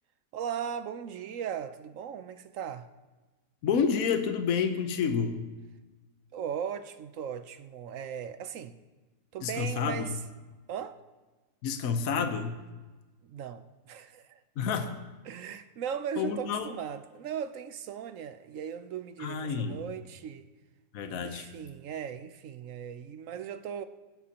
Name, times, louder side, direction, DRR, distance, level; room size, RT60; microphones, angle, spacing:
voice 1, 0.3-2.9 6.3-8.8 9.3-10.1 10.7-11.0 13.2-14.4 15.3-20.5 21.1-23.8, right 8 dB, 65° right, 0.9 m, -38 dB
voice 2, 3.6-5.4 9.4-10.1 11.6-12.6 14.6-14.9 16.2-16.7 19.2-19.8 20.9-21.5, left 6 dB, 60° left, 1.3 m, -29 dB
24.5 x 10.5 x 2.9 m
omnidirectional pair, 1.7 m